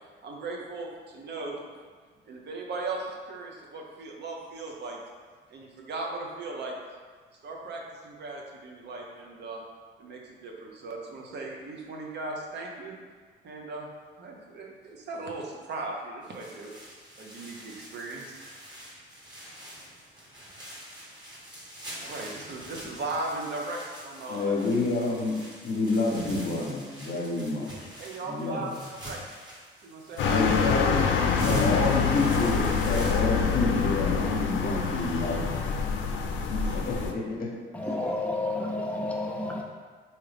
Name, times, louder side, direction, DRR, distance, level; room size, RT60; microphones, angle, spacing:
voice 1, 0.2-1.6 2.3-5.0 5.5-6.8 7.4-9.6 10.0-13.0 13.4-16.8 17.2-18.5 22.0-24.5 28.0-29.2 29.8-30.5 36.6-36.8 37.8-38.3, right 3 dB, 55° right, -1 dB, 0.7 m, -38 dB
sound 1, 16.2-33.6, right 1 dB, 20° right, 1.1 m, -43 dB
voice 2, 24.3-25.4 25.6-27.7 28.3-28.6 30.3-31.1 31.4-35.9 36.5-37.5, left 3 dB, 45° left, -2 dB, 0.9 m, -28 dB
sound 2, 30.2-37.1, left 6 dB, 65° left, 0.4 m, -26 dB
voice 3, 37.7-39.6, left 2 dB, 5° left, -1 dB, 0.6 m, -30 dB
3.6 x 2.9 x 3.3 m, 1.5 s
cardioid pair, 85°, 20 cm